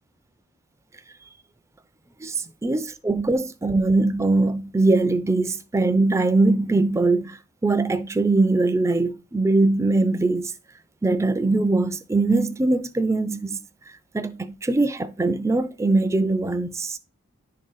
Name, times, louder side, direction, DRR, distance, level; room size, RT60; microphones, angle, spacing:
voice 1, 2.6-10.5 11.0-13.6 14.1-17.0, right 2 dB, 15° right, 0.4 m, -21 dB
10.5 x 3.8 x 3.9 m
head